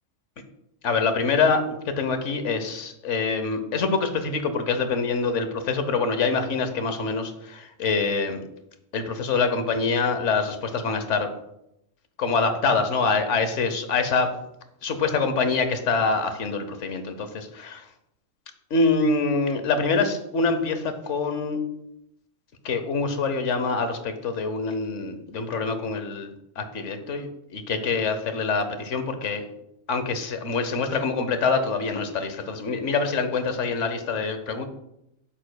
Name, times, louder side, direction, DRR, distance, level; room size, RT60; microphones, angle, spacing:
voice 1, 0.8-8.4 8.9-11.3 12.2-14.3 14.8-17.9 18.7-21.6 22.6-29.4 29.9-34.7, left 4 dB, 65° left, 8 dB, 1.1 m, -25 dB
8.9 x 7.3 x 2.2 m, 0.81 s
omnidirectional pair, 1.3 m